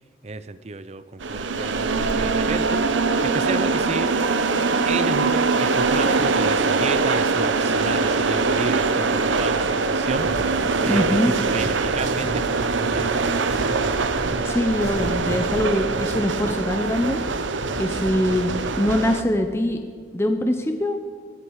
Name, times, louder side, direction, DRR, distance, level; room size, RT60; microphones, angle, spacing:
voice 1, 0.2-2.8 3.2-4.1 4.8-13.6, right 3 dB, 35° right, 13 dB, 0.5 m, -32 dB
sound 1, 1.2-19.2, right 4 dB, 90° right, 0.9 m, -23 dB
Drum, 10.2-10.3 10.8-11.1 11.5-11.6 12.2-12.4 12.8-13.0 13.5-13.8 14.2-14.3 14.8-15.4, equal, 35° left, 4.9 m, -34 dB
voice 2, 10.9-11.3 14.4-17.2 17.8-18.5 18.8-19.8 20.1-21.0, left 1 dB, 15° left, 5 dB, 0.8 m, -23 dB
20.0 x 13.5 x 4.8 m, 2.1 s
head